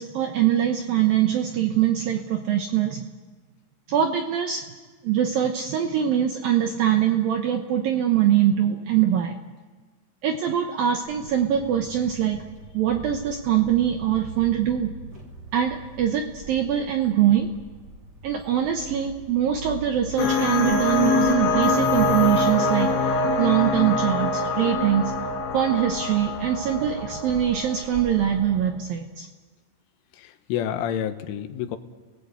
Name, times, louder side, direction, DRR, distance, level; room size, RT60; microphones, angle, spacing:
voice 1, 0.0-3.1 3.9-4.6 5.0-9.4 10.2-12.4 12.7-14.9 15.5-17.5 18.2-25.1 25.5-29.3, right 10 dB, 75° right, 4 dB, 2.1 m, -23 dB
sound 1, 11.0-28.7, right 2 dB, 25° right, 2.7 m, -42 dB
sound 2, 20.2-28.5, left 3 dB, 70° left, 4.0 m, -24 dB
voice 2, 30.2-31.8, left 9 dB, 85° left, 8 dB, 3.7 m, -29 dB
30.0 x 19.0 x 8.2 m, 1.4 s
omnidirectional pair, 5.5 m